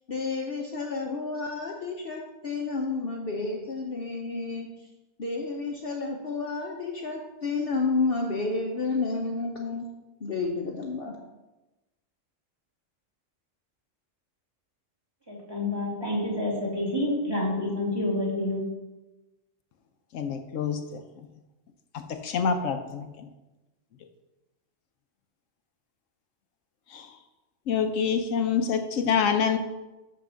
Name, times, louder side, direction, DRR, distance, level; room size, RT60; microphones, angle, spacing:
voice 1, 0.1-4.7 5.2-9.9 10.2-11.2, left 3 dB, 50° left, 1 dB, 0.9 m, -30 dB
voice 2, 15.3-18.6, left 1 dB, 20° right, -4 dB, 2.4 m, -28 dB
voice 3, 20.1-21.0 22.1-23.1 26.9-27.1 27.7-29.6, left 6 dB, 80° left, 7 dB, 1.0 m, -26 dB
5.9 x 5.7 x 6.2 m, 1.1 s
omnidirectional pair, 1.3 m